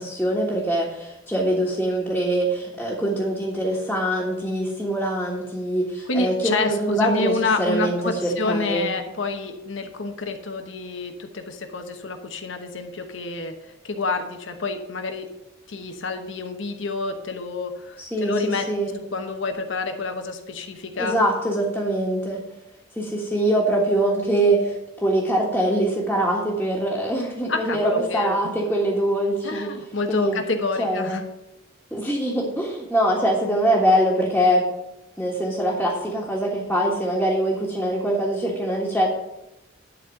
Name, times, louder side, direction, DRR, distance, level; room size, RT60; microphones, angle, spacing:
voice 1, 0.0-7.3 7.6-8.9 18.0-18.9 21.0-22.4 22.9-29.7 30.1-30.4 30.8-31.2 31.9-34.7 35.2-39.1, right 1 dB, 5° left, -6 dB, 1.5 m, -23 dB
voice 2, 6.1-13.6 13.8-15.3 15.7-18.7 19.1-21.2 27.5-28.5 29.4-31.3, left 3 dB, 70° left, 5 dB, 1.0 m, -28 dB
11.0 x 4.2 x 7.6 m, 0.88 s
head